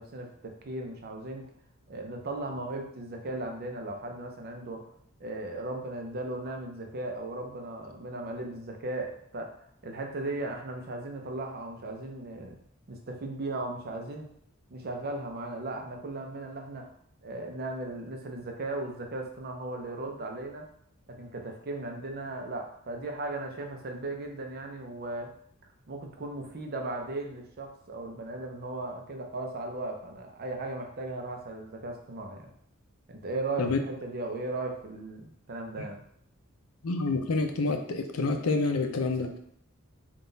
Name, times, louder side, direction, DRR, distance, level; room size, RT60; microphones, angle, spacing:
voice 1, 0.0-1.5 1.9-4.8 5.2-9.6 9.8-12.6 12.9-14.3 14.7-16.9 17.2-20.7 21.1-25.3 25.9-32.5 33.1-36.0, right 2 dB, 45° right, 3 dB, 0.6 m, -37 dB
voice 2, 36.8-39.3, left 3 dB, 80° left, 5 dB, 0.5 m, -28 dB
3.8 x 2.4 x 3.9 m, 0.66 s
head